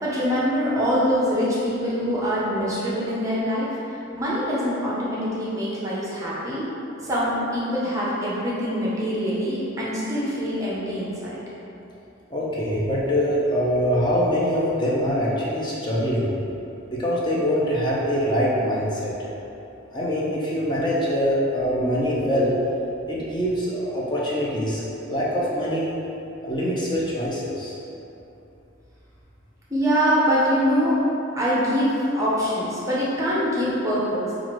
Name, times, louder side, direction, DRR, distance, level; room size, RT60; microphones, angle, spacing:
voice 1, 0.0-6.7 7.0-11.3 29.7-31.0 31.4-34.3, equal, 15° right, -7 dB, 0.7 m, -24 dB
voice 2, 12.3-16.3 16.9-19.1 19.9-22.6 23.0-24.8 25.1-25.9 26.4-27.7, equal, 25° left, -6 dB, 0.7 m, -24 dB
5.6 x 2.5 x 3.1 m, 2.8 s
head